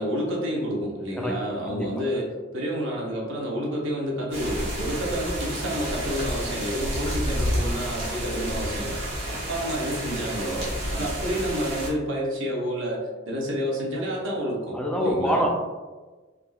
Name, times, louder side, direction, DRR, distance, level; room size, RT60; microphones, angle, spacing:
voice 1, 0.0-9.0 9.3-15.4, equal, 80° right, -3 dB, 0.8 m, -29 dB
voice 2, 1.2-2.0 14.7-15.5, equal, 5° left, 0 dB, 0.3 m, -26 dB
sound 1, 4.3-11.9, equal, 55° right, 1.0 m, -30 dB
3.5 x 2.5 x 2.3 m, 1.3 s
head